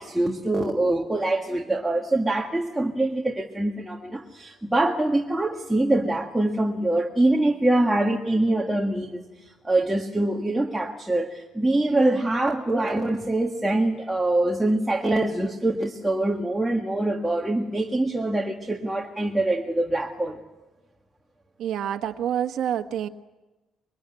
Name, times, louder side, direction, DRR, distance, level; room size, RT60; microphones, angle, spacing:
voice 1, 0.0-20.4, right 2 dB, 5° right, 1 dB, 1.6 m, -24 dB
voice 2, 21.6-23.1, right 10 dB, 60° right, 5 dB, 1.3 m, -27 dB
25.0 x 23.0 x 9.7 m, 1.1 s
cardioid pair, 160°, 0 cm